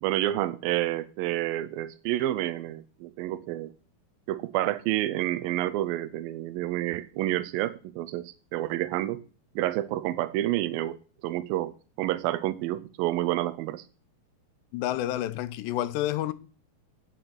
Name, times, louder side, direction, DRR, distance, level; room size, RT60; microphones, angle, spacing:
voice 1, 0.0-3.7 4.3-9.2 9.6-11.0 11.2-13.8, right 15 dB, 85° right, 2.1 m, -29 dB
voice 2, 14.7-16.3, left 13 dB, 85° left, 2.9 m, -29 dB
9.2 x 7.6 x 5.8 m
omnidirectional pair, 4.8 m